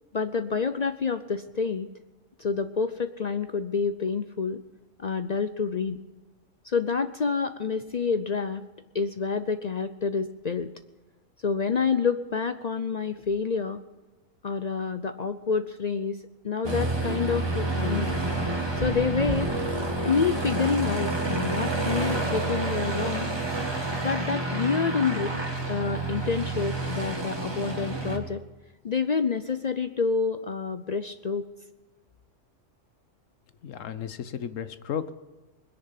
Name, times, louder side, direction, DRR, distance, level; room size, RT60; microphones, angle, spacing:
voice 1, 0.1-1.9 2.4-4.6 5.0-6.0 6.6-8.6 8.9-10.7 11.4-13.8 14.4-18.2 18.8-19.5 20.0-23.3 24.0-25.4 25.7-28.4 28.8-31.5, left 5 dB, 50° left, 10 dB, 0.5 m, -28 dB
Aircraft, 16.6-28.2, right 2 dB, 20° right, 1.9 m, -29 dB
voice 2, 33.6-35.1, left 8 dB, 75° left, 12 dB, 1.3 m, -34 dB
21.5 x 10.5 x 5.8 m, 1.2 s
omnidirectional pair, 1.3 m